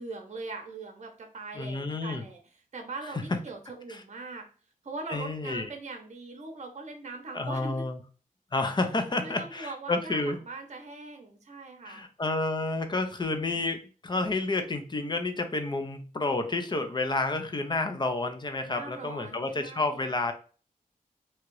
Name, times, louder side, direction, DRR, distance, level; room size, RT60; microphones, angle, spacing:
voice 1, 0.0-2.4 2.7-4.5 4.8-7.8 9.2-12.0 18.6-20.0, right 3 dB, 50° right, 3 dB, 0.8 m, -41 dB
voice 2, 1.5-2.2 3.9-4.0 5.1-5.6 7.3-8.0 8.5-10.4 11.8-20.3, left 2 dB, 30° left, 7 dB, 0.5 m, -30 dB
2.8 x 2.4 x 3.0 m, 0.38 s
wide cardioid pair, 75°, 15 cm